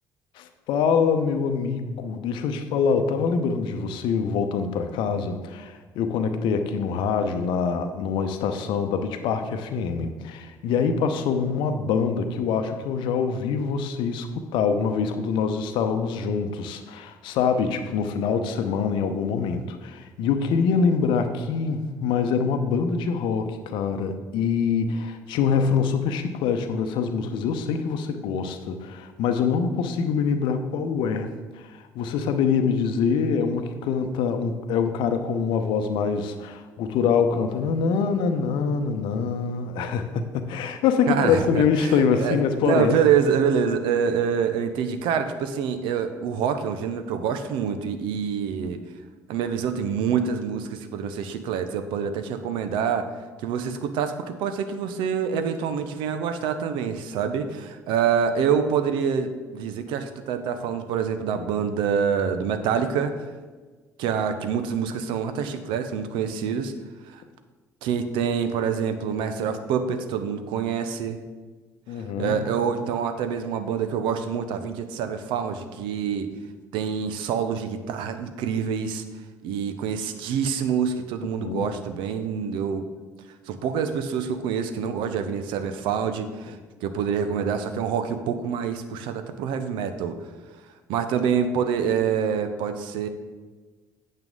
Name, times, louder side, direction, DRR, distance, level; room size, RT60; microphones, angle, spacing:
voice 1, 0.4-31.3 31.5-42.9 71.9-72.5 81.4-81.7, left 6 dB, 55° left, 7 dB, 0.8 m, -25 dB
voice 2, 41.1-42.4 42.6-48.8 49.3-53.1 53.4-63.3 64.0-66.7 67.1-67.2 67.8-71.2 72.2-76.3 76.7-79.0 79.4-82.8 83.5-90.2 90.9-93.1, right 7 dB, 60° right, 9 dB, 0.7 m, -26 dB
8.9 x 7.6 x 3.8 m, 1.4 s
figure-of-eight pair, 50°, 10 cm